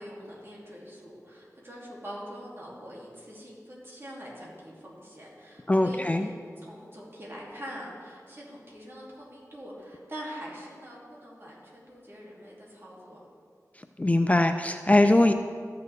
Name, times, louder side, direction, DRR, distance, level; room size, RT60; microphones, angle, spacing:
voice 1, 0.0-13.2, equal, 40° right, -5 dB, 2.7 m, -43 dB
voice 2, 5.7-6.3 14.0-15.3, left 1 dB, 20° left, 7 dB, 0.4 m, -21 dB
13.5 x 6.7 x 3.5 m, 2.1 s
wide cardioid pair, 45°, 6 cm